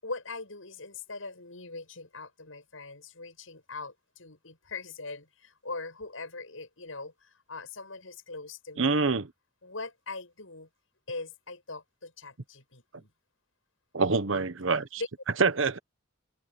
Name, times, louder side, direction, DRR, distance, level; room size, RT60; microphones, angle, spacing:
voice 1, 0.0-9.0 9.6-10.7 11.1-13.1 15.0-15.1, left 3 dB, 80° left, 7.9 m, -41 dB
voice 2, 8.8-9.3 13.9-14.9 15.4-15.8, right 4 dB, 70° right, 1.1 m, -25 dB
head